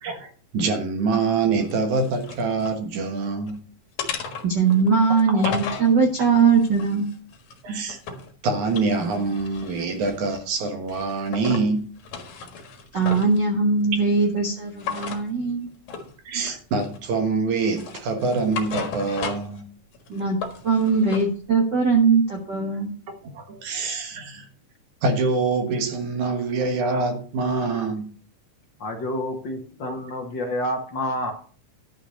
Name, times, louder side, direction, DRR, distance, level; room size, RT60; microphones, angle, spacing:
voice 1, 0.0-3.6 5.3-5.5 7.6-8.0 8.4-11.9 16.3-19.7 22.7-22.8 23.2-24.5 25.0-28.1 29.9-30.0, right 4 dB, 65° right, 2.7 m, -25 dB
sound 1, 1.6-2.8 3.2-3.6 4.0-5.9 6.5-8.3 8.6-10.5 10.9-11.7 12.0-13.4 14.8-15.2 15.9-16.1 16.5-17.2 17.6-19.6 19.9-21.3, left 5 dB, 65° left, 2.8 m, -35 dB
voice 2, 4.4-7.1 12.9-15.7 20.1-20.4 20.6-22.9, right 4 dB, 45° right, 1.7 m, -20 dB
voice 3, 28.8-31.3, left 1 dB, 50° left, 1.5 m, -28 dB
12.0 x 6.1 x 6.4 m
omnidirectional pair, 3.8 m